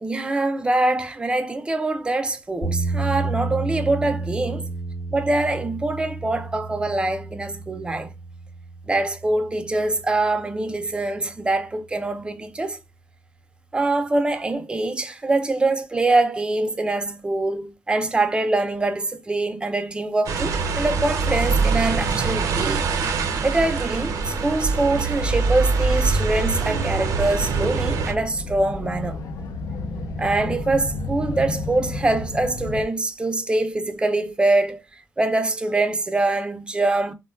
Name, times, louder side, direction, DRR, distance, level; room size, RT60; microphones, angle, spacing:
voice 1, 0.0-4.7 5.1-8.1 8.9-12.8 13.7-22.9 23.4-29.2 30.2-34.8 35.2-37.1, right 2 dB, 15° right, 0.4 m, -24 dB
sound 1, 2.6-10.7, right 3 dB, 45° left, 1.0 m, -31 dB
sound 2, 20.3-28.1, right 4 dB, 90° right, 0.5 m, -24 dB
sound 3, 21.4-32.8, left 2 dB, 85° left, 0.4 m, -34 dB
3.5 x 2.2 x 2.2 m
wide cardioid pair, 135°, 6 cm